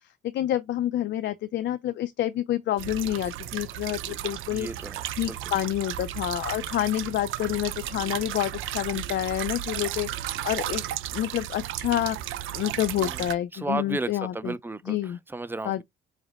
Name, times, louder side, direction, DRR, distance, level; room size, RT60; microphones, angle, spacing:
voice 1, 0.2-4.7 5.2-10.8 11.1-12.2 12.5-14.5 14.9-15.2 15.6-15.8, left 13 dB, 65° left, 0.4 m, -28 dB
sound 1, 2.8-13.3, right 12 dB, 85° right, 0.5 m, -34 dB
voice 2, 4.5-5.4 13.0-13.3 13.5-15.8, right 2 dB, 10° right, 0.4 m, -34 dB
5.0 x 2.1 x 4.1 m
cardioid pair, 90°, 20 cm